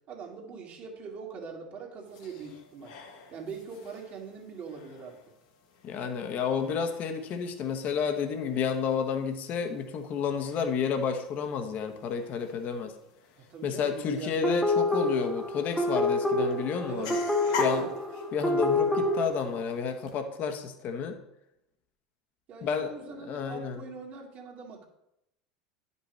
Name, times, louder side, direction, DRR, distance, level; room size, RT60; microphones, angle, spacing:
voice 1, 0.1-2.9 3.3-5.2 13.5-14.3 16.9-17.2 17.5-17.9 22.5-24.9, right 5 dB, 45° right, 0 dB, 1.9 m, -42 dB
sound 1, 2.0-20.2, left 5 dB, 65° left, 1.3 m, -45 dB
voice 2, 5.8-12.9 13.6-17.1 17.6-17.9 18.3-21.2 22.6-23.8, left 6 dB, 45° left, 6 dB, 1.0 m, -31 dB
sound 2, 14.4-19.3, left 2 dB, 5° left, 1.1 m, -27 dB
10.0 x 5.4 x 3.3 m, 0.81 s
hypercardioid pair, 85°, 4 cm